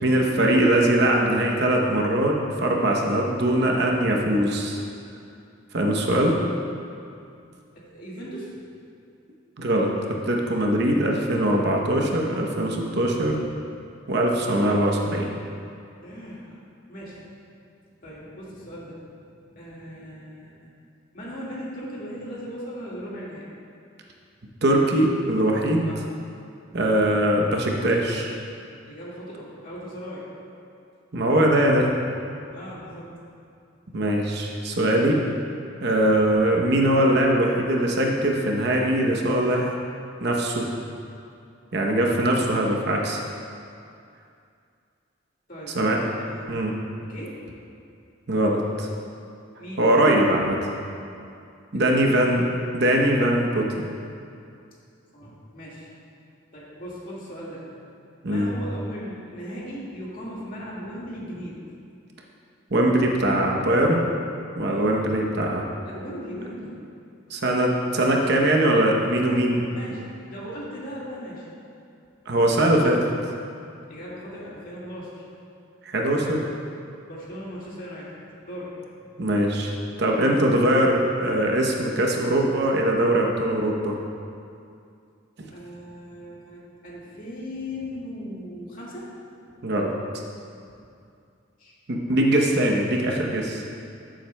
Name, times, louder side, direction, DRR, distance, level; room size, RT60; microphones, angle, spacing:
voice 1, 0.0-4.8 5.7-6.4 9.6-13.4 14.1-15.3 24.6-25.9 26.7-28.3 31.1-31.9 33.9-35.2 35.8-39.8 40.2-40.7 41.7-43.2 45.8-46.0 46.5-46.7 48.3-48.9 49.8-50.6 51.7-52.4 52.7-53.9 58.2-58.5 62.7-64.0 64.6-65.6 67.3-69.6 72.3-73.1 75.8-76.5 79.2-79.7 80.0-84.0 89.6-89.9 91.9-93.6, right 1 dB, 55° right, 0 dB, 0.8 m, -21 dB
voice 2, 6.2-6.7 7.7-8.6 16.0-16.6 16.9-17.2 18.0-20.7 21.1-23.5 25.8-26.1 28.9-30.3 32.5-33.2 42.5-42.7 45.5-45.8 46.2-46.6 46.9-47.5 49.6-49.8 51.7-52.2 55.1-55.9 56.5-57.7 58.3-61.6 64.7-64.9 65.8-66.8 69.7-71.5 73.9-75.3 77.1-79.1 85.5-89.2 89.4-89.6 90.7-90.8 91.6-91.7 92.4-92.5, equal, 45° left, -6 dB, 1.9 m, -38 dB
13.5 x 7.5 x 2.2 m, 2.5 s
head